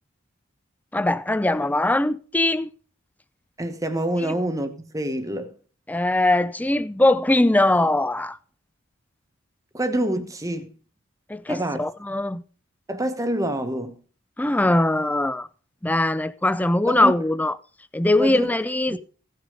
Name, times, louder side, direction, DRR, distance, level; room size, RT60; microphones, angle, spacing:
voice 1, 0.9-2.7 4.2-4.3 5.9-8.4 11.3-12.4 14.4-15.5 15.8-17.6 17.9-19.0, left 1 dB, 10° left, 0.4 m, -21 dB
voice 2, 3.6-5.5 9.7-10.7 11.5-11.8 12.9-13.9 16.9-17.1 18.2-18.5 18.9-19.0, right 1 dB, 15° right, 1.1 m, -26 dB
16.5 x 6.5 x 5.1 m
head